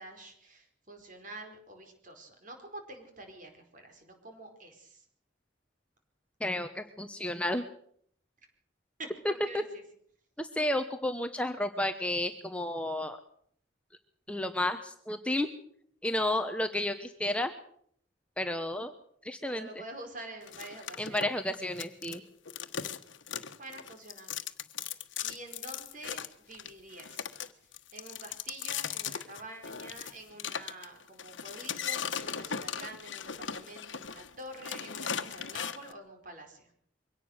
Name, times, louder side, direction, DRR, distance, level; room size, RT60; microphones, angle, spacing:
voice 1, 0.0-5.0 9.0-9.8 19.5-21.2 23.6-24.4 25.2-26.2 26.5-27.3 27.9-36.7, right 2 dB, 40° right, 4 dB, 4.6 m, -47 dB
voice 2, 6.4-7.7 9.5-9.6 10.4-13.2 14.3-15.5 16.0-17.5 18.4-18.9 19.2-19.7 21.0-22.2, left 1 dB, 5° left, 7 dB, 1.0 m, -32 dB
sound 1, 20.5-22.2 22.5-35.9, left 8 dB, 75° left, 1.3 m, -38 dB
23.5 x 17.5 x 6.6 m, 0.64 s
head